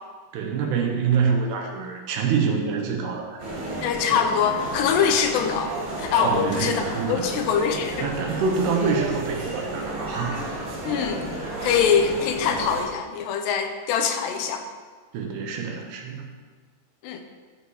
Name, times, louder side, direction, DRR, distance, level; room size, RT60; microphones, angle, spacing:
voice 1, 0.3-3.4 6.2-7.3 8.0-10.8 15.1-16.3, right 5 dB, 75° right, 2 dB, 3.1 m, -26 dB
sound 1, 3.4-12.8, right 2 dB, 55° right, 4.1 m, -32 dB
voice 2, 3.8-5.7 6.0-6.8 7.1-8.1 10.8-11.2 11.6-14.6 17.0-17.2, left 7 dB, 80° left, 5 dB, 2.9 m, -23 dB
13.5 x 5.8 x 4.7 m, 1.5 s
omnidirectional pair, 4.9 m